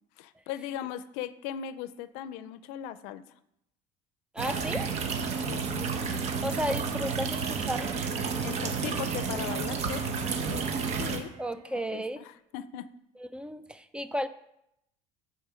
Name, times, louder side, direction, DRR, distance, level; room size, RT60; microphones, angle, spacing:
voice 1, 0.2-3.2 5.5-6.2 8.4-10.7 11.0-11.3 11.6-12.9, left 10 dB, 85° left, 15 dB, 0.5 m, -39 dB
voice 2, 4.3-4.9 6.4-8.3 11.4-12.2 13.2-14.3, equal, 5° right, 12 dB, 0.4 m, -34 dB
sound 1, 4.4-11.2, right 5 dB, 50° right, 1.1 m, -31 dB
Bowed string instrument, 7.7-12.1, right 7 dB, 75° right, 1.2 m, -50 dB
9.4 x 4.4 x 5.0 m, 0.79 s
cardioid pair, 125°, 15 cm